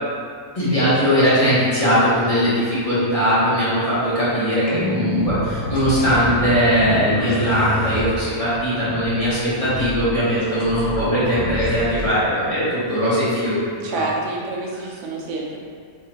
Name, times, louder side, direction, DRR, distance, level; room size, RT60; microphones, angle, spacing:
voice 1, 0.5-14.1, equal, 25° left, -14 dB, 1.3 m, -20 dB
sound 1, 4.7-12.1, left 1 dB, 70° left, 1.2 m, -27 dB
voice 2, 13.8-15.6, right 2 dB, 90° right, -2 dB, 1.2 m, -28 dB
3.5 x 3.2 x 3.0 m, 2.1 s
omnidirectional pair, 1.7 m